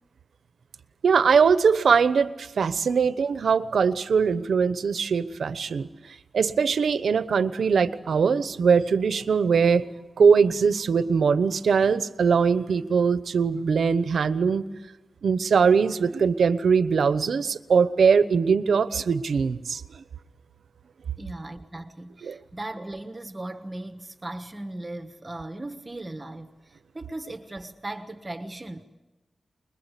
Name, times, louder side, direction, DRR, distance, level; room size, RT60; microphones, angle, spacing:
voice 1, 1.0-5.9 6.3-9.9 10.2-14.6 15.2-20.0 22.2-22.4, right 5 dB, 85° right, 13 dB, 1.0 m, -21 dB
voice 2, 21.2-28.8, right 2 dB, 25° right, 8 dB, 1.4 m, -37 dB
25.0 x 22.0 x 8.4 m, 1.1 s
wide cardioid pair, 115°, 0 cm